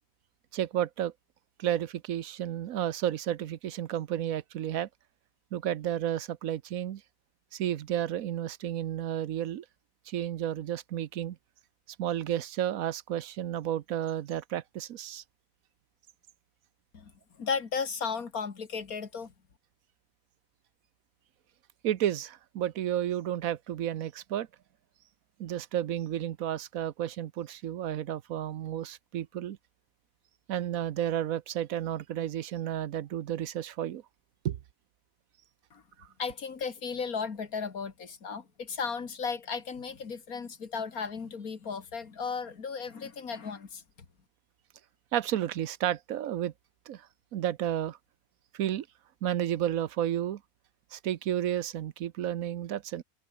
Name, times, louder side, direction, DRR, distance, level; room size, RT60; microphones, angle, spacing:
voice 1, 0.5-1.1 1.6-4.9 5.5-7.0 7.5-9.6 10.1-11.4 12.0-15.2 21.8-24.5 25.4-29.6 30.5-34.0 34.4-34.6 36.0-36.1 45.1-46.5 46.9-48.0 48.5-48.9 49.2-50.4 50.9-53.0, right 11 dB, 80° right, 1.2 m, -32 dB
voice 2, 17.4-19.3 35.7-35.8 36.2-43.8, left 5 dB, 80° left, 2.5 m, -35 dB
omnidirectional pair, 1.5 m